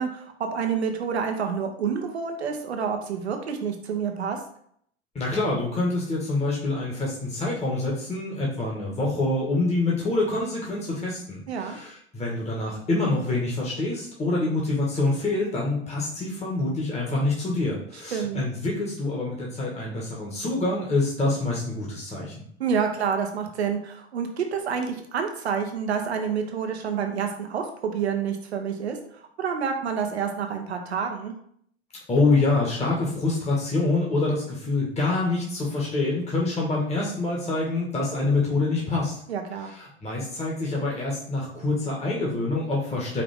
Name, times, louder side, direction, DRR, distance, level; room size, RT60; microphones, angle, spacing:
voice 1, 0.0-4.4 11.5-11.8 18.1-18.4 22.6-29.0 29.4-31.3 39.3-39.7, right 6 dB, 85° right, 4 dB, 0.9 m, -28 dB
voice 2, 5.1-22.4 32.1-39.2 39.6-43.2, left 2 dB, 20° left, -3 dB, 1.5 m, -26 dB
5.1 x 2.8 x 3.6 m, 0.65 s
hypercardioid pair, 85°, 32 cm